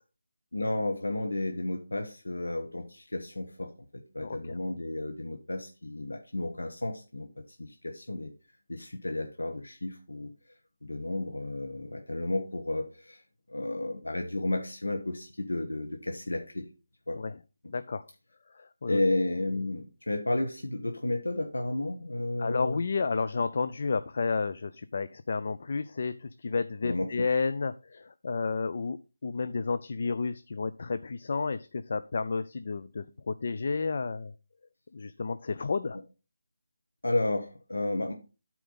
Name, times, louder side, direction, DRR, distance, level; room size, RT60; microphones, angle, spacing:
voice 1, 0.5-7.3 7.6-8.3 8.7-10.3 10.8-13.2 13.5-16.7 17.1-17.2 18.9-22.8 26.8-27.1 37.0-38.1, left 2 dB, 85° left, 3 dB, 1.2 m, -32 dB
voice 2, 17.7-18.0 18.6-19.0 22.4-29.0 29.2-34.3 34.9-36.0, left 4 dB, 50° left, 11 dB, 0.5 m, -31 dB
12.0 x 4.6 x 4.0 m, 0.32 s
figure-of-eight pair, 160°, 0 cm